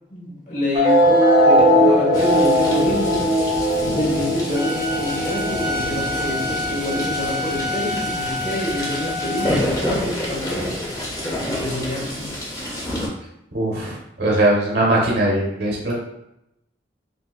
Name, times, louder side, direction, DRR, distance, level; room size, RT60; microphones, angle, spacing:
voice 1, 0.1-3.2 3.9-10.7 11.4-12.3, left 1 dB, 40° left, -5 dB, 1.0 m, -27 dB
sound 1, 0.7-7.7, equal, 25° right, 0.9 m, -19 dB
sound 2, 2.1-13.1, left 1 dB, 20° left, 0.6 m, -29 dB
Bowed string instrument, 4.5-9.6, left 1 dB, ahead, 1.0 m, -28 dB
voice 2, 13.5-16.0, right 1 dB, 60° right, -3 dB, 1.0 m, -20 dB
3.6 x 2.7 x 2.3 m, 0.83 s
head